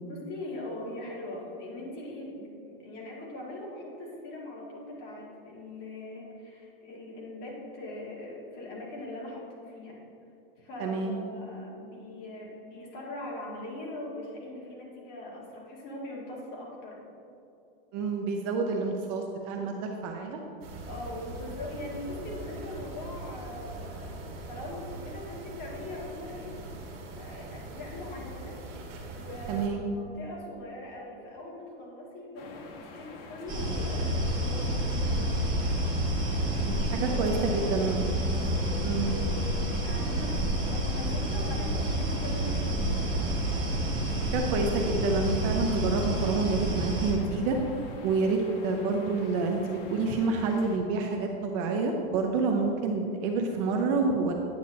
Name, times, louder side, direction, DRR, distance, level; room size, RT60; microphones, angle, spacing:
voice 1, 0.0-10.0 10.6-17.0 20.9-28.6 29.1-35.4 36.9-42.9, left 1 dB, 35° left, -4 dB, 1.8 m, -41 dB
voice 2, 10.8-11.2 17.9-20.4 29.5-29.9 36.7-38.1 38.8-39.2 44.1-47.6 48.0-54.3, right 4 dB, 35° right, 3 dB, 0.5 m, -28 dB
sound 1, 20.6-29.7, right 2 dB, 75° right, 1.7 m, -42 dB
sound 2, 32.4-50.8, left 3 dB, 70° left, 1.2 m, -46 dB
sound 3, 33.5-47.1, right 1 dB, 15° right, 1.4 m, -29 dB
9.3 x 8.0 x 2.7 m, 2.8 s
supercardioid pair, 160°, 30 cm